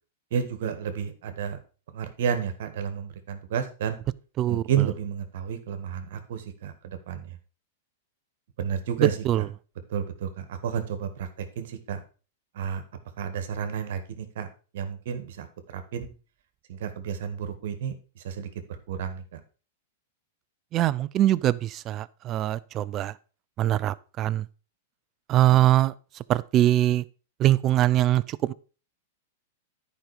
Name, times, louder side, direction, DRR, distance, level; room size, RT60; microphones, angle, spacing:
voice 1, 0.3-1.6 1.9-4.0 4.5-7.3 8.6-9.2 9.9-12.0 12.5-12.8 13.2-14.5 14.7-16.1 16.7-18.5 18.9-19.4, right 8 dB, 65° right, 1.6 m, -31 dB
voice 2, 4.4-4.9 9.0-9.5 20.7-23.1 23.6-24.5 25.3-25.9 26.3-27.0 27.4-28.5, right 13 dB, 35° right, 0.5 m, -23 dB
10.5 x 5.3 x 4.9 m
hypercardioid pair, 115°, 0 cm